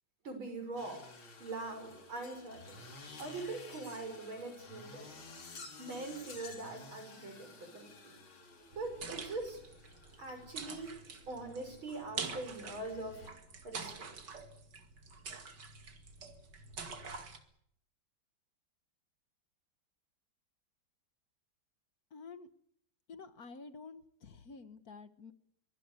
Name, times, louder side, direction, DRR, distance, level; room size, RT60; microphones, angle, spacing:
voice 1, 0.2-1.1 1.4-2.9 3.2-5.1 5.8-8.2 8.8-9.6 10.2-11.0 11.3-13.3 13.6-14.2, right 2 dB, 90° right, 6 dB, 7.0 m, -42 dB
sound 1, 0.8-13.3, left 3 dB, 85° left, 4.1 m, -53 dB
sound 2, 8.7-17.4, right 5 dB, 60° right, 2.8 m, -46 dB
voice 2, 22.1-22.5 23.1-25.3, left 4 dB, 50° left, 12 dB, 1.6 m, -50 dB
24.0 x 18.5 x 8.4 m, 0.69 s
omnidirectional pair, 2.2 m